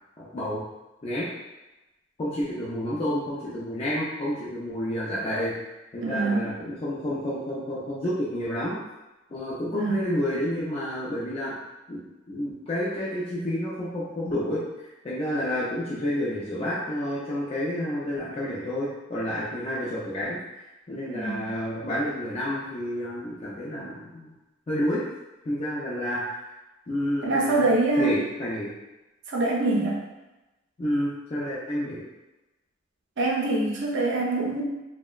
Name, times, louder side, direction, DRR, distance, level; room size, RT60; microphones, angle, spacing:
voice 1, 0.2-0.6 1.0-1.3 2.2-5.5 5.9-8.8 9.3-11.5 11.9-14.6 15.0-20.4 20.9-24.3 24.7-25.0 25.4-26.4 26.9-27.7 28.0-28.7 30.8-32.0, equal, 30° left, -9 dB, 0.4 m, -29 dB
voice 2, 6.0-6.5 9.7-10.0 21.1-21.5 27.2-28.1 29.3-30.0 33.2-34.6, right 2 dB, 60° right, -2 dB, 0.6 m, -24 dB
2.8 x 2.1 x 2.3 m, 1.0 s
head